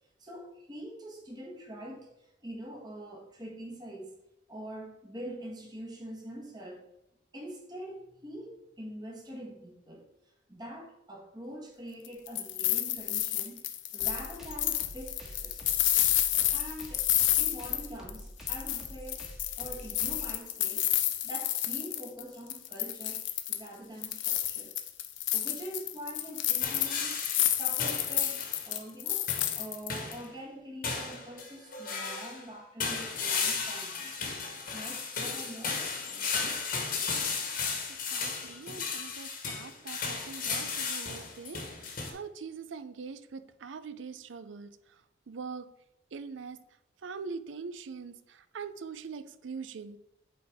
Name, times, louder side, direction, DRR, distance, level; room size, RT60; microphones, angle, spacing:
voice 1, 0.2-6.9 7.3-10.1 10.5-13.6 13.9-15.8 16.5-17.1 17.4-19.3 19.6-20.9 21.2-24.7 25.3-34.4 34.7-36.6, right 1 dB, 20° right, 0 dB, 1.3 m, -44 dB
sound 1, 12.0-18.2 18.5-22.2 22.5-23.7 24.0-30.1, left 13 dB, 75° left, 0.6 m, -30 dB
sound 2, 14.0-20.4, equal, ahead, 1.3 m, -46 dB
sound 3, 26.6-28.7 29.3-29.6 29.9-30.3 30.8-32.4 32.8-42.1, left 5 dB, 50° left, 1.3 m, -35 dB
voice 2, 37.9-44.8 45.3-45.7 46.1-46.6 47.0-50.0, right 5 dB, 80° right, 13 dB, 0.5 m, -43 dB
8.4 x 4.0 x 3.5 m, 0.87 s
head